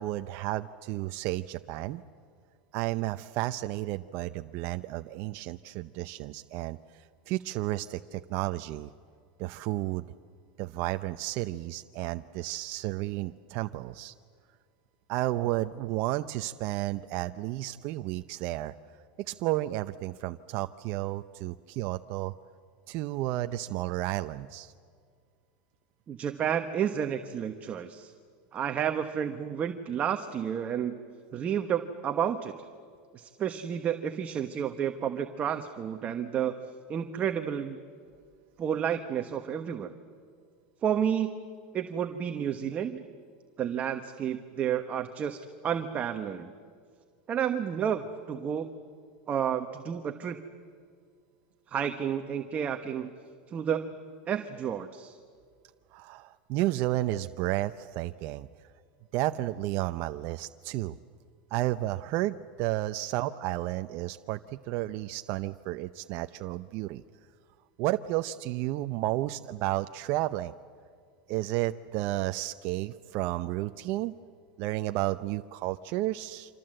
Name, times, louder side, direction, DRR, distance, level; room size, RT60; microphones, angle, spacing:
voice 1, 0.0-2.0 2.7-8.9 9.4-10.1 10.6-14.1 15.1-18.7 19.3-22.3 22.9-24.7 55.9-58.5 59.1-61.0 61.5-67.0 67.8-70.5 71.3-74.1 74.6-76.6, right 16 dB, 55° right, 9 dB, 0.7 m, -32 dB
voice 2, 26.1-28.1 28.5-31.0 31.3-32.5 33.1-36.5 36.9-37.8 38.6-39.9 40.8-41.4 41.7-43.0 43.6-46.5 47.3-48.7 49.3-50.4 51.7-53.1 53.5-54.0 54.3-55.1, right 8 dB, 30° right, 6 dB, 1.2 m, -31 dB
28.0 x 26.0 x 7.8 m, 2.1 s
supercardioid pair, 130°, 5 cm